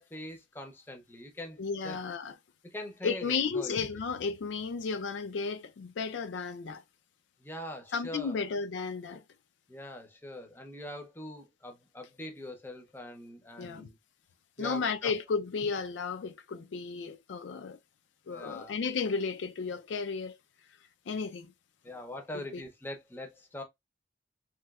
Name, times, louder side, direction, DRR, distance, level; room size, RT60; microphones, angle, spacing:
voice 1, 0.0-1.6 1.8-2.0 2.6-4.0 7.4-8.4 9.7-14.0 14.6-15.1 18.3-18.7 21.8-23.6, left 1 dB, 10° left, 0.6 m, -43 dB
voice 2, 1.6-2.3 3.0-6.8 7.9-9.2 13.6-13.9 14.6-17.8 18.3-20.4 21.1-21.5 22.5-22.6, left 5 dB, 75° left, 0.4 m, -33 dB
3.1 x 2.9 x 2.3 m
head